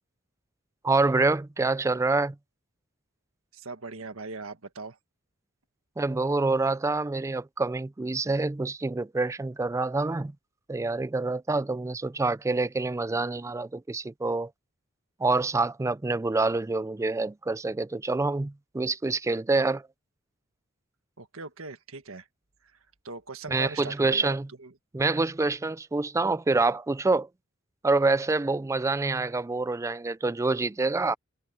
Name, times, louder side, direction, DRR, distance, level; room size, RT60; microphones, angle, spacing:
voice 1, 0.8-2.4 6.0-10.3 10.7-14.5 15.2-19.8 23.5-24.5 24.9-27.3 27.8-31.2, right 3 dB, 15° right, 0.3 m, -26 dB
voice 2, 3.5-5.0 21.2-22.3 22.7-22.8 23.0-24.8, right 3 dB, 75° right, 1.7 m, -40 dB
head